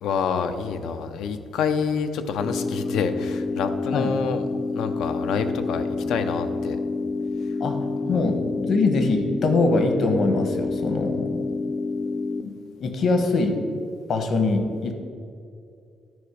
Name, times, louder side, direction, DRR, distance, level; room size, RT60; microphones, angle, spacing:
voice 1, 0.0-4.4 4.7-6.8 8.1-8.2, left 6 dB, 85° left, 8 dB, 0.6 m, -27 dB
sound 1, 2.4-12.4, left 3 dB, 30° left, 0.5 m, -28 dB
voice 2, 8.1-11.4 12.4-12.5 12.8-13.6 14.1-14.9, left 3 dB, 55° left, 6 dB, 1.0 m, -23 dB
11.5 x 5.0 x 5.0 m, 2.4 s
cardioid pair, 125°, 0 cm